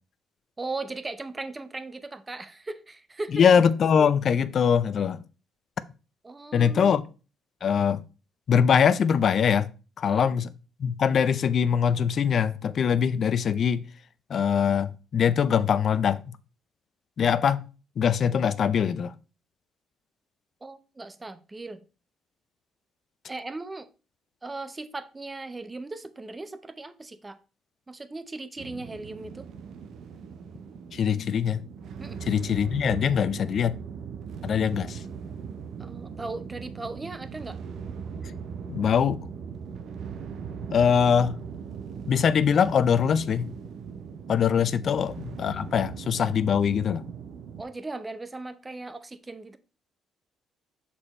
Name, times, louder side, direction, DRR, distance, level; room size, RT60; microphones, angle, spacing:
voice 1, 0.6-3.4 6.2-6.9 10.0-10.3 20.6-21.8 23.3-23.9 24.4-27.4 27.9-29.5 32.0-32.2 35.8-37.6 44.8-45.0 47.6-49.6, right 3 dB, 15° right, 0.7 m, -38 dB
voice 2, 3.3-5.2 6.5-7.0 7.6-8.0 8.5-9.7 10.0-10.5 10.8-13.8 14.3-16.2 17.2-17.6 18.0-19.1 30.9-31.6 32.3-33.7 34.4-35.0 38.7-39.2 40.7-41.3 42.1-43.5 44.3-47.0, left 7 dB, 50° left, 0.5 m, -22 dB
sound 1, 28.6-47.6, right 6 dB, 65° right, 0.8 m, -39 dB
7.1 x 4.3 x 4.3 m
cardioid pair, 120°, 0 cm